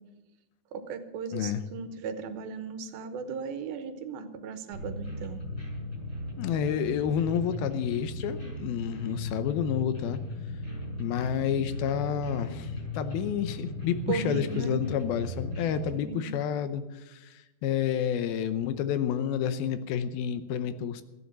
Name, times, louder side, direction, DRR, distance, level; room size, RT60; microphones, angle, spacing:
voice 1, 0.7-5.4 14.1-14.8 15.9-16.3, right 6 dB, 80° right, 9 dB, 2.9 m, -36 dB
voice 2, 1.3-1.6 6.4-10.2 11.0-21.0, left 8 dB, 80° left, 11 dB, 2.7 m, -30 dB
sound 1, 4.7-15.9, left 1 dB, 35° left, 6.9 m, -37 dB
15.0 x 10.0 x 7.3 m, 1.1 s
omnidirectional pair, 4.3 m